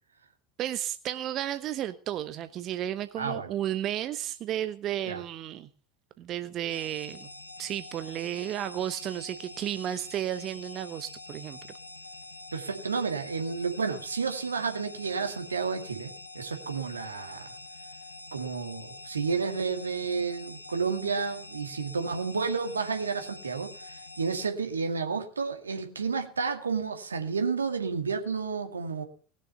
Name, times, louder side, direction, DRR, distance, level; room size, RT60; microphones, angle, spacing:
voice 1, 0.6-5.7 6.2-7.3 7.6-11.6, right 11 dB, 40° right, 11 dB, 0.9 m, -33 dB
voice 2, 3.2-3.5 5.0-5.2 12.5-17.5 18.3-29.0, right 5 dB, 80° right, 6 dB, 2.2 m, -31 dB
sound 1, 6.7-24.5, left 2 dB, 85° left, 1.7 m, -46 dB
19.5 x 6.9 x 6.8 m, 0.43 s
figure-of-eight pair, 80°, 0 cm